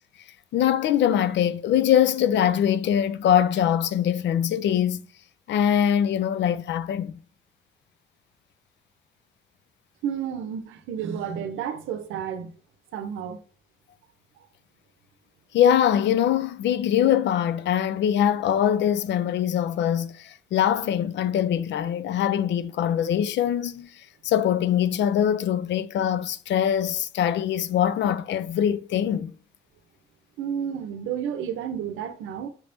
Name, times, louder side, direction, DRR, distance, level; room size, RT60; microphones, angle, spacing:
voice 1, 0.5-5.1 5.5-7.2 15.5-23.9 24.2-29.3, left 9 dB, 65° left, 0.4 m, -23 dB
voice 2, 10.0-12.5 12.9-13.4 30.4-32.5, right 8 dB, 90° right, 0.7 m, -31 dB
5.9 x 3.4 x 2.6 m
cardioid pair, 90°, 20 cm